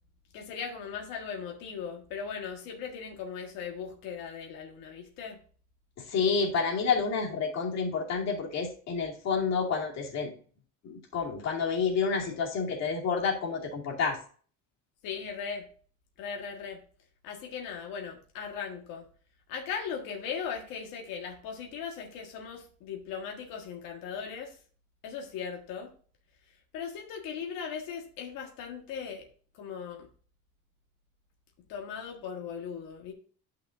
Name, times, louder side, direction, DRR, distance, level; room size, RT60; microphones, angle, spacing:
voice 1, 0.3-5.4 15.0-15.6 16.2-16.8 17.2-19.1 19.5-24.6 25.0-25.9 26.7-29.3 29.5-30.1 31.7-33.1, left 6 dB, 90° left, 2 dB, 1.7 m, -38 dB
voice 2, 6.0-10.3 10.8-14.2, left 5 dB, 55° left, -1 dB, 2.5 m, -29 dB
10.5 x 5.8 x 2.6 m, 0.43 s
cardioid pair, 140°, 33 cm